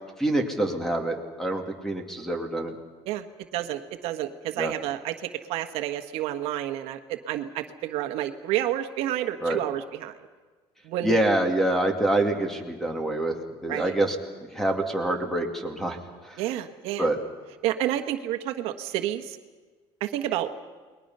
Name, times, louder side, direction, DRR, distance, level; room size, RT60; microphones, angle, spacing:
voice 1, 0.2-2.7 4.6-4.7 9.4-9.6 11.0-13.3 13.6-14.1 14.5-16.0 17.0-17.2, right 1 dB, 5° left, 4 dB, 2.4 m, -26 dB
voice 2, 3.5-10.1 10.8-11.2 13.7-14.0 16.4-17.1 17.6-19.4 20.0-20.5, right 12 dB, 70° right, 7 dB, 1.4 m, -30 dB
29.5 x 21.0 x 5.6 m, 1.4 s
cardioid pair, 155°, 10 cm